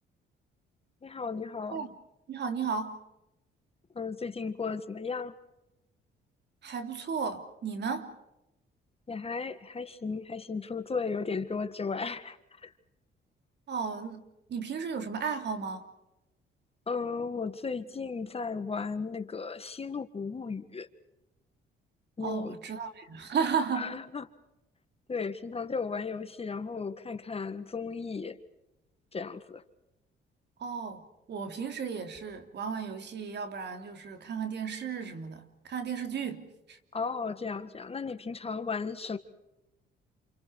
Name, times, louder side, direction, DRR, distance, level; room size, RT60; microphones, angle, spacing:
voice 1, 1.0-1.9 4.0-5.4 9.1-12.7 16.9-20.9 22.2-22.6 23.7-24.3 25.1-28.4 29.1-29.6 36.9-39.2, left 5 dB, 30° left, 1.7 m, -35 dB
voice 2, 2.3-3.0 6.6-8.1 13.7-14.2 14.5-15.8 22.2-23.9 30.6-31.0 31.3-36.8, right 6 dB, 60° right, 3.2 m, -34 dB
29.0 x 28.5 x 4.8 m
cardioid pair, 90°, 20 cm